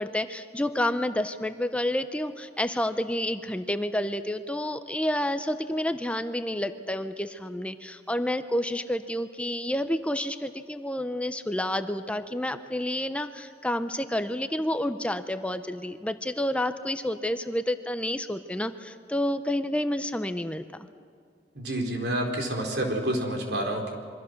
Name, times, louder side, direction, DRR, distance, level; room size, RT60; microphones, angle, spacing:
voice 1, 0.0-20.7, left 1 dB, 5° left, 10 dB, 0.7 m, -29 dB
voice 2, 21.5-23.9, right 1 dB, 70° right, 2 dB, 4.1 m, -28 dB
26.5 x 24.0 x 6.6 m, 2.3 s
head